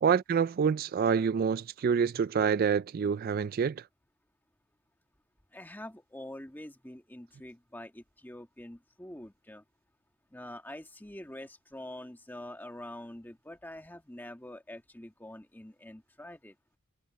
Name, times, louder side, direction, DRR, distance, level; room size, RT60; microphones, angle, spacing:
voice 1, 0.0-3.8, right 6 dB, 45° right, 0.3 m, -27 dB
voice 2, 5.5-9.6 10.3-16.5, left 1 dB, 10° left, 1.5 m, -45 dB
head